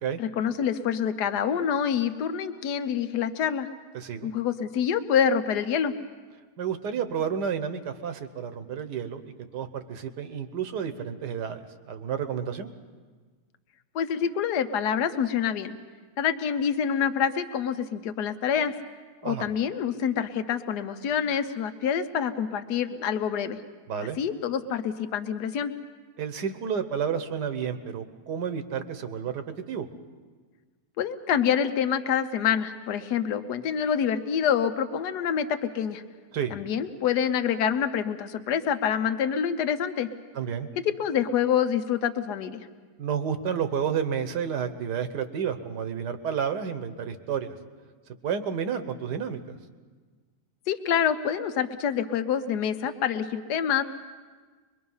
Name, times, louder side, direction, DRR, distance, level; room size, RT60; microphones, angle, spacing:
voice 1, 0.2-3.7 4.2-5.9 13.9-15.8 16.2-18.7 19.2-23.6 24.2-25.7 31.0-36.0 36.5-40.1 41.0-42.7 50.7-53.8, left 8 dB, 75° left, 9 dB, 1.4 m, -26 dB
voice 2, 3.9-4.3 6.6-12.7 19.2-19.5 23.9-24.2 26.2-29.8 36.3-36.6 40.3-40.7 43.0-47.5 48.2-49.4, right 7 dB, 80° right, 9 dB, 1.6 m, -31 dB
24.0 x 22.5 x 5.5 m, 1.4 s
omnidirectional pair, 1.8 m